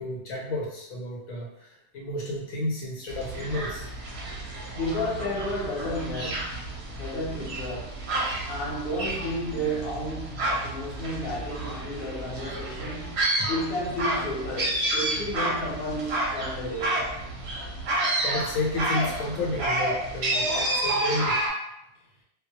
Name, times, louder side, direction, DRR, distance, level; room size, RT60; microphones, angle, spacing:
voice 1, 0.0-3.9 13.4-13.5 18.2-21.4, left 2 dB, 75° left, -3 dB, 1.0 m, -31 dB
sound 1, 3.1-21.5, right 1 dB, 60° right, 0.8 m, -30 dB
voice 2, 4.7-8.0 8.5-13.2 13.5-17.1, equal, 50° left, -5 dB, 0.8 m, -32 dB
2.2 x 2.1 x 2.7 m, 0.84 s
omnidirectional pair, 1.4 m